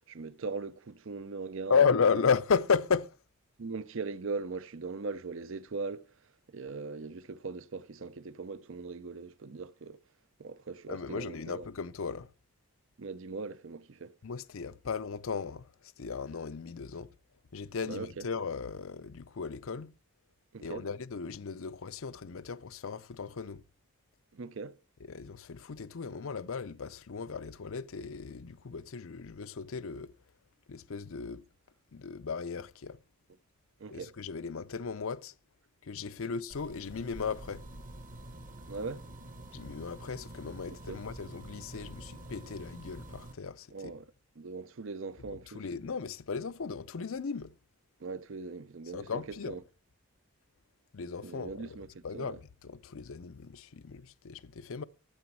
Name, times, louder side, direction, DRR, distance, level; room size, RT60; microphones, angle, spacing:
voice 1, 0.1-1.8 2.1-2.2 3.6-6.1 6.5-10.0 10.4-11.7 13.0-14.1 17.9-18.3 20.5-20.9 24.3-24.8 33.8-34.1 38.7-39.0 40.7-41.0 43.7-44.0 44.4-45.6 48.0-49.6 51.2-52.4, right 4 dB, 60° right, 0.6 m, -40 dB
voice 2, 1.7-3.1 10.9-12.3 14.2-17.1 17.5-19.9 20.6-23.6 25.1-30.1 30.7-31.4 31.9-33.0 33.9-35.3 35.8-37.6 39.5-43.9 45.5-47.5 48.9-49.6 50.9-51.8 52.0-54.8, left 5 dB, 65° left, 0.6 m, -34 dB
sound 1, 36.5-43.3, right 1 dB, 35° right, 1.1 m, -47 dB
13.5 x 7.9 x 4.6 m
head